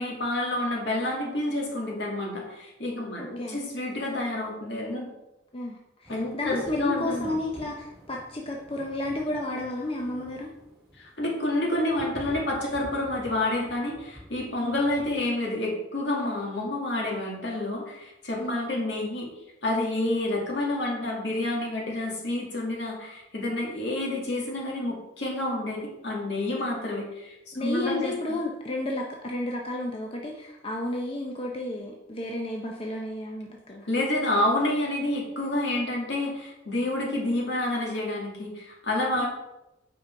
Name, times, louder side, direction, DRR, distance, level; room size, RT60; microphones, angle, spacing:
voice 1, 0.0-5.1 6.1-7.3 11.0-19.3 19.6-28.4 33.9-39.3, left 1 dB, 65° left, -2 dB, 2.3 m, -29 dB
voice 2, 3.2-3.6 5.5-10.5 14.6-14.8 18.4-18.6 27.5-33.9 39.2-39.3, left 1 dB, 30° left, -1 dB, 0.8 m, -32 dB
sound 1, 6.0-15.2, equal, 5° right, 2.6 m, -48 dB
8.5 x 5.4 x 4.6 m, 0.93 s
head